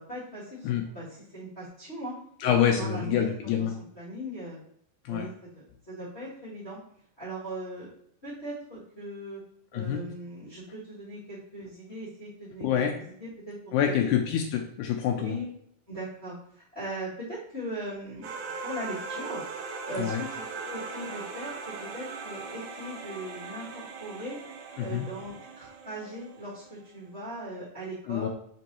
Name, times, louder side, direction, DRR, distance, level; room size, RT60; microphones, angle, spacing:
voice 1, 0.0-2.2 2.4-3.7 3.9-4.6 5.1-6.8 7.2-7.9 8.2-9.4 9.7-14.1 15.1-15.4 15.9-18.3 18.6-19.4 19.8-24.4 24.8-28.3, right 1 dB, 45° left, -12 dB, 0.8 m, -39 dB
voice 2, 2.4-3.8 5.1-5.3 9.7-10.0 12.6-12.9 13.7-15.4 20.0-20.2 24.8-25.1 28.1-28.3, left 9 dB, 85° left, 2 dB, 1.8 m, -26 dB
sound 1, 18.2-26.8, right 4 dB, 75° right, 1.7 m, -39 dB
5.2 x 3.1 x 2.9 m, 0.68 s
omnidirectional pair, 3.9 m